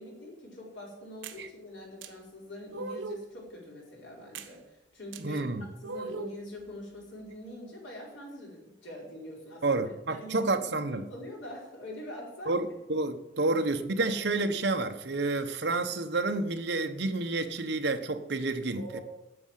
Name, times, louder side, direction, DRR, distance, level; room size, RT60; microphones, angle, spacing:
voice 1, 0.0-5.5 5.8-12.6 18.7-19.0, left 1 dB, 85° left, 4.7 m, -44 dB
sound 1, 1.2-1.4 2.0-2.1 2.7-3.3 4.4-4.5 5.1-5.2 5.8-6.4, right 3 dB, 85° right, 1.0 m, -38 dB
voice 2, 5.2-5.7 9.6-11.0 12.5-19.0, right 2 dB, 60° right, 1.0 m, -29 dB
9.5 x 7.6 x 9.1 m
head